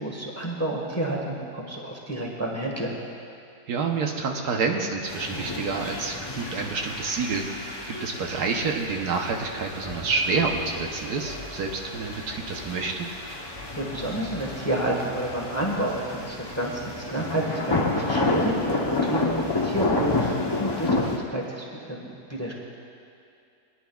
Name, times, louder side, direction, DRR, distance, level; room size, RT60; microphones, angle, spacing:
voice 1, 0.0-3.0 13.7-22.5, right 1 dB, 10° left, -2 dB, 1.1 m, -30 dB
voice 2, 3.7-13.1, right 4 dB, 75° right, 2 dB, 1.4 m, -28 dB
sound 1, 5.1-21.2, left 2 dB, 30° left, 0.4 m, -30 dB
21.5 x 10.5 x 2.3 m, 2.5 s
omnidirectional pair, 1.8 m